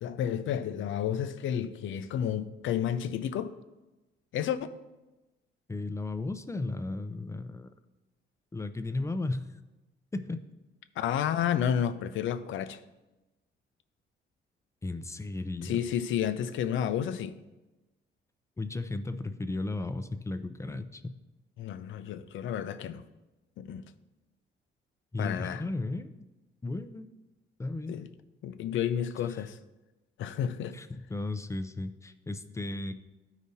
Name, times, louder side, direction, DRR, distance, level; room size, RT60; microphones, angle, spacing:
voice 1, 0.0-3.5 4.3-4.6 11.0-12.8 15.6-17.4 21.6-23.0 23.6-23.8 25.2-25.6 27.9-28.1 28.4-29.6 30.2-30.8, left 9 dB, 75° left, 0.5 m, -31 dB
voice 2, 5.7-7.7 8.5-9.5 10.1-10.4 14.8-15.8 18.6-21.2 25.1-26.1 26.6-27.1 27.6-28.0 30.7-32.9, left 2 dB, 15° left, 0.5 m, -35 dB
13.0 x 5.0 x 2.8 m
cardioid pair, 90°, 20 cm